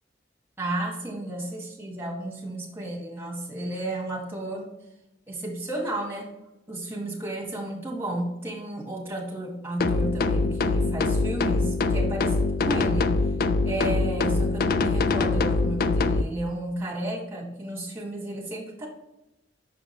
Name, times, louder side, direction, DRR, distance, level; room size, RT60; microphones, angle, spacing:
voice 1, 0.6-4.7 5.3-6.3 6.7-13.2 13.6-18.9, right 1 dB, 15° right, -2 dB, 1.7 m, -32 dB
sound 1, 9.8-16.2, left 3 dB, 50° left, 0.4 m, -24 dB
6.1 x 5.0 x 3.2 m, 0.89 s
head